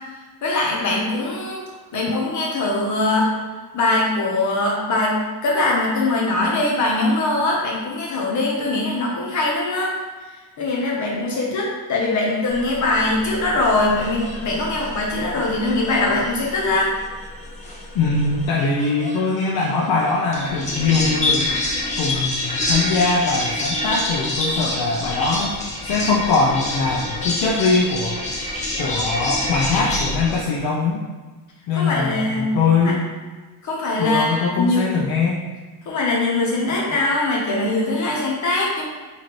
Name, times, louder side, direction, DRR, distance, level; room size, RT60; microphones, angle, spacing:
voice 1, 0.4-1.6 1.9-3.3 3.7-9.9 10.6-16.9 31.7-32.5 32.8-32.9 33.6-35.0 35.9-38.8, left 2 dB, 45° left, -3 dB, 1.0 m, -22 dB
sound 1, 12.5-30.4, left 1 dB, 20° left, 0.6 m, -27 dB
voice 2, 17.9-21.5 22.0-28.2 28.8-31.0 31.7-33.1 34.0-35.4, left 4 dB, 65° left, -3 dB, 0.6 m, -22 dB
4.2 x 2.6 x 3.0 m, 1.3 s
cardioid pair, 145°, 40 cm